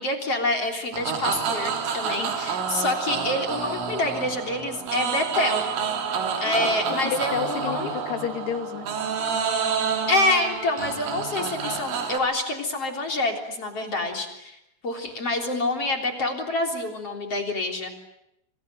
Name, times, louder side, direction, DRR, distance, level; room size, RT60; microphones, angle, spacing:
voice 1, 0.0-5.6 6.4-7.9 10.1-14.6 14.8-17.9, left 2 dB, 35° left, 3 dB, 4.0 m, -27 dB
sound 1, 0.9-12.2, right 6 dB, 90° right, 5.9 m, -28 dB
voice 2, 7.0-8.9 14.0-14.1, left 8 dB, 60° left, 7 dB, 4.4 m, -31 dB
29.0 x 26.5 x 7.8 m, 0.81 s
omnidirectional pair, 5.6 m